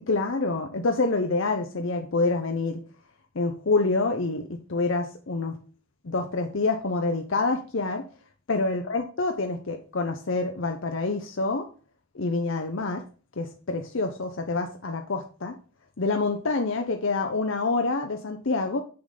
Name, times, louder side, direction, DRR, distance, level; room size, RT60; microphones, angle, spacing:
voice 1, 0.1-2.8 3.3-5.6 6.0-8.1 8.5-11.7 12.1-13.0 13.4-15.5 16.0-18.8, left 3 dB, 60° left, 0.7 m, -27 dB
6.8 x 6.6 x 3.9 m
head